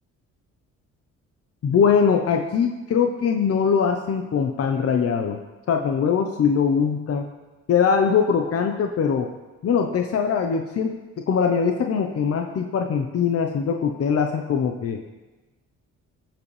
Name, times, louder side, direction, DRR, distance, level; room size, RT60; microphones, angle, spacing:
voice 1, 1.6-5.4 5.7-7.3 7.7-9.3 9.6-15.0, left 6 dB, 50° left, 4 dB, 0.9 m, -22 dB
18.0 x 7.3 x 3.3 m, 1.2 s
cardioid pair, 90°, 30 cm